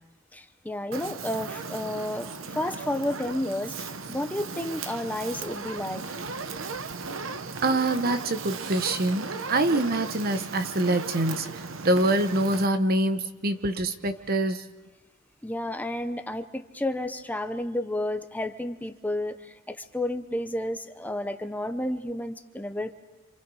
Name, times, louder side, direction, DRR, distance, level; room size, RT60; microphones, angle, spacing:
voice 1, 0.3-6.0 15.4-22.9, left 1 dB, 10° left, 8 dB, 0.8 m, -31 dB
Fire, 0.9-12.7, right 4 dB, 65° right, 1.0 m, -36 dB
voice 2, 7.6-14.7, right 1 dB, 45° right, 9 dB, 1.2 m, -25 dB
28.0 x 27.5 x 4.9 m, 1.2 s
head